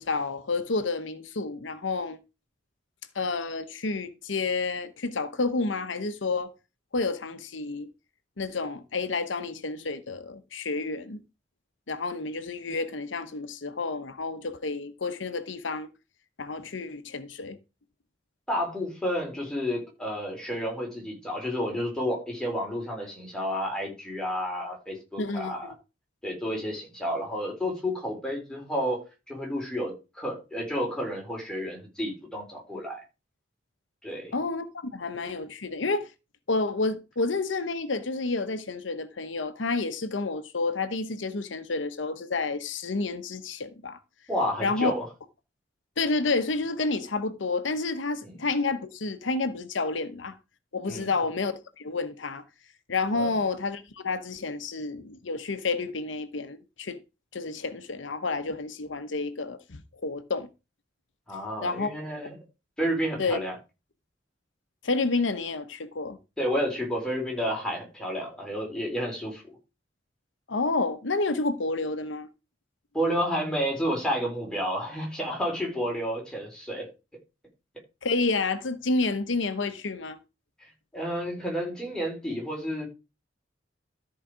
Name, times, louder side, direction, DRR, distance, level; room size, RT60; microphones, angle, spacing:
voice 1, 0.0-2.2 3.1-6.5 6.9-7.9 8.4-11.2 11.9-15.9 16.4-17.6 25.2-25.7 34.3-36.1 36.5-44.0 44.6-44.9 46.0-50.4 50.7-52.4 52.9-57.0 57.3-60.5 61.6-61.9 63.2-63.4 64.8-66.2 70.5-72.3 78.0-80.2, left 3 dB, 85° left, 0.9 m, -30 dB
voice 2, 18.5-25.7 26.2-33.0 34.0-34.3 44.3-45.1 48.2-48.3 50.9-51.1 53.1-53.3 61.3-62.4 62.8-63.6 66.4-69.4 72.9-76.9 80.9-82.9, equal, 5° left, 4.1 m, -31 dB
13.0 x 4.9 x 5.0 m
head